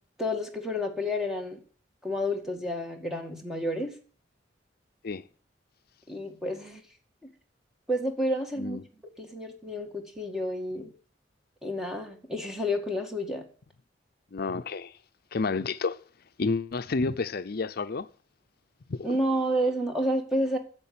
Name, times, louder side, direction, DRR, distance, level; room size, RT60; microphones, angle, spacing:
voice 1, 0.2-1.6 2.0-3.9 6.1-6.8 7.2-7.3 7.9-8.8 9.2-10.9 11.6-13.4 19.0-20.6, equal, 5° right, 2.0 m, -30 dB
voice 2, 14.3-14.9 15.3-16.0 16.4-18.1 18.9-19.1, left 4 dB, 55° left, 0.6 m, -30 dB
10.0 x 7.2 x 8.6 m
head